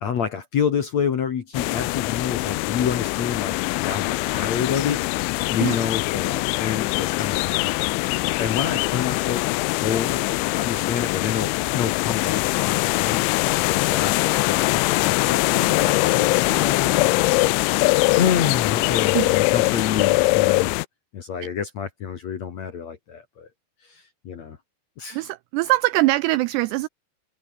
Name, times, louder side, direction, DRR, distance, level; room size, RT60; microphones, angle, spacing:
voice 1, 0.0-5.0 5.5-7.7 8.4-9.4 9.8-13.2 13.5-20.7 21.1-23.5 23.8-24.6 25.0-25.3, left 7 dB, 55° left, 2.1 m, -28 dB
sound 1, 1.5-20.9, left 23 dB, 85° left, 2.9 m, -22 dB
voice 2, 25.1-26.9, right 19 dB, 85° right, 2.4 m, -22 dB
omnidirectional pair, 5.4 m